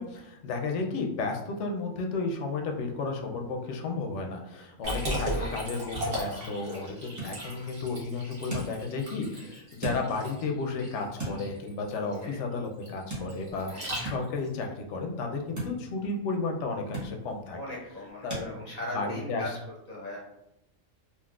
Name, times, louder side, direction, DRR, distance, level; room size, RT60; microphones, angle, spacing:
voice 1, 0.0-17.6 18.2-18.6 18.9-19.4, left 3 dB, 70° left, 2 dB, 0.8 m, -33 dB
Liquid, 4.8-14.5, equal, 45° right, 1.1 m, -37 dB
sound 1, 6.9-18.5, right 1 dB, 15° right, 0.8 m, -42 dB
voice 2, 17.5-19.5 19.9-20.2, left 1 dB, 35° left, -5 dB, 0.8 m, -39 dB
3.6 x 2.5 x 2.4 m, 0.84 s
omnidirectional pair, 1.3 m